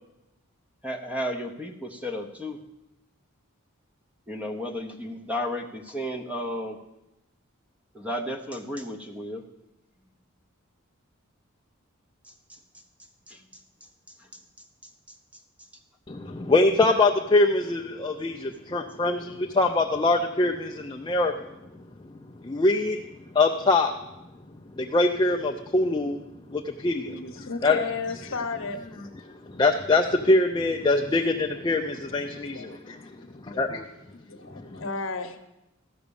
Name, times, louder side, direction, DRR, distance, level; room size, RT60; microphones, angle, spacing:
voice 1, 0.8-2.6 4.3-6.8 7.9-9.4 12.5-12.6 13.3-13.4, equal, 5° right, 5 dB, 0.8 m, -33 dB
voice 2, 16.1-21.5 22.4-23.0 23.3-24.0 24.8-26.2 26.5-27.8 29.5-33.0 33.6-33.8 34.6-34.8, left 2 dB, 20° left, 3 dB, 0.4 m, -23 dB
voice 3, 27.1-28.8 32.4-33.1 34.3-35.4, left 4 dB, 60° left, 7 dB, 0.9 m, -34 dB
14.0 x 6.0 x 6.9 m, 0.94 s
head